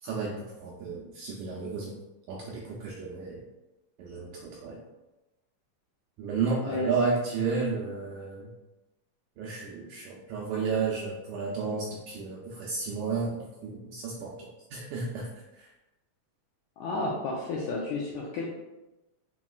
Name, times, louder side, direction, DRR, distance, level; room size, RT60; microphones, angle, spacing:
voice 1, 0.0-1.9 2.3-3.4 4.0-4.8 6.2-8.5 9.4-15.3 15.5-15.7, right 4 dB, 85° right, -3 dB, 1.7 m, -32 dB
voice 2, 16.8-18.5, left 2 dB, 85° left, -4 dB, 1.6 m, -32 dB
5.5 x 3.0 x 2.3 m, 1.0 s
omnidirectional pair, 3.9 m